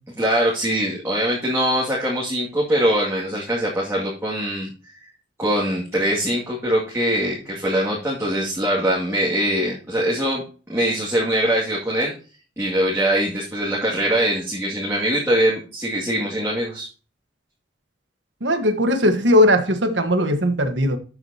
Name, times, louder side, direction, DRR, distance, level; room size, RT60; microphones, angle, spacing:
voice 1, 0.2-4.7 5.4-10.4 10.7-12.1 12.6-16.9, right 1 dB, 15° right, 2.3 m, -22 dB
voice 2, 18.4-21.0, left 1 dB, 85° right, 1.5 m, -18 dB
13.0 x 6.4 x 2.9 m
head